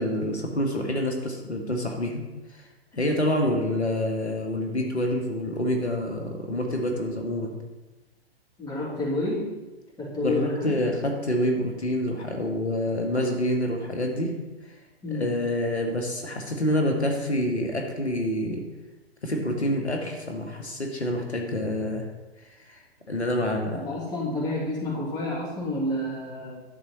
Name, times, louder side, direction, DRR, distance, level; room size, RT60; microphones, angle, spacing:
voice 1, 0.0-2.2 2.5-2.7 2.9-7.6 10.2-14.3 15.1-18.6 19.2-22.1 22.6-23.9, left 1 dB, 85° left, 2 dB, 1.9 m, -27 dB
voice 2, 8.6-9.5 10.0-10.8 15.0-15.3 23.7-26.6, left 1 dB, 10° left, -6 dB, 3.1 m, -29 dB
11.0 x 7.6 x 4.3 m, 1.1 s
figure-of-eight pair, 120°, 32 cm